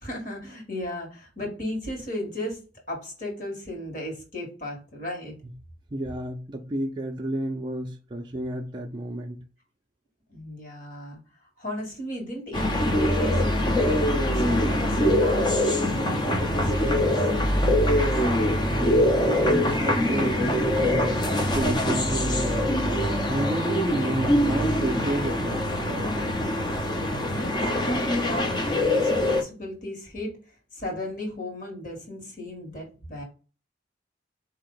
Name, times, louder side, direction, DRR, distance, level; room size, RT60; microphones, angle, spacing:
voice 1, 0.0-2.6 2.9-5.3 10.3-18.0 27.3-33.2, left 1 dB, 45° left, 1.6 m, -36 dB
voice 2, 5.9-9.4 18.7-22.7 23.3-26.4, right 1 dB, 25° right, 0.4 m, -31 dB
sound 1, 12.5-29.4, left 1 dB, 25° left, 0.6 m, -23 dB
4.3 x 2.8 x 3.8 m
head